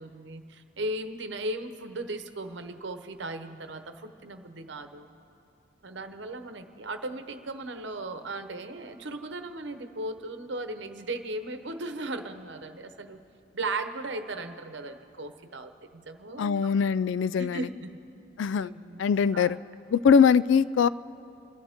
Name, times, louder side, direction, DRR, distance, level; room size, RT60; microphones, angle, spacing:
voice 1, 0.0-5.1 5.8-13.2 13.5-16.7 17.4-18.0 18.6-19.0 19.3-19.6, right 2 dB, 65° right, 7 dB, 1.0 m, -37 dB
voice 2, 16.4-17.6 18.4-18.7 19.0-19.6 19.9-20.9, left 6 dB, 75° left, 18 dB, 0.3 m, -22 dB
30.0 x 12.5 x 3.6 m, 2.8 s
head